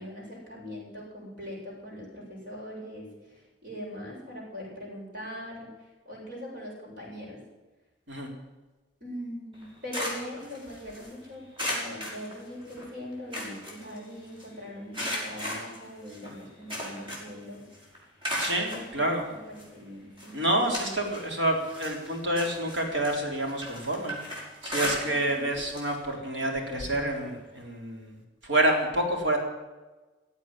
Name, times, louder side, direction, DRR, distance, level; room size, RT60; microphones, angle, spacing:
voice 1, 0.0-7.4 9.0-17.7 18.7-20.5, equal, 50° right, -3 dB, 7.5 m, -41 dB
sound 1, 9.5-11.1 11.6-12.8 13.1-14.4 14.9-17.4 17.7-18.9 19.6-19.7 20.2-21.3 21.6-25.4 25.7-25.9 26.3-26.4 27.6-27.7, equal, 30° right, 5.7 m, -35 dB
voice 2, 18.4-19.3 20.3-24.2 24.6-28.1 28.5-29.4, right 1 dB, 70° right, 1 dB, 3.8 m, -28 dB
16.0 x 8.3 x 9.9 m, 1.2 s
head